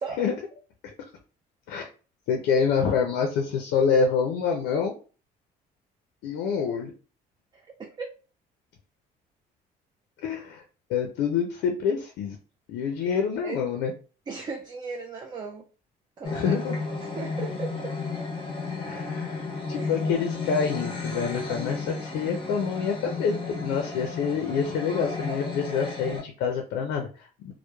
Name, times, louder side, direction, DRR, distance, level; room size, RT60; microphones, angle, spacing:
voice 1, 2.3-4.9 6.2-6.9 10.2-10.6 10.9-12.4 12.7-13.9 16.3-16.8 18.8-27.5, left 6 dB, 90° left, 0.4 m, -27 dB
voice 2, 7.5-8.1 13.4-13.6 14.3-15.7 16.2-16.5 17.0-17.9 19.7-20.0, right 4 dB, 25° right, 0.3 m, -36 dB
sound 1, 16.2-26.2, left 4 dB, 30° left, 0.7 m, -33 dB
2.9 x 2.0 x 2.2 m
cardioid pair, 110°, 17 cm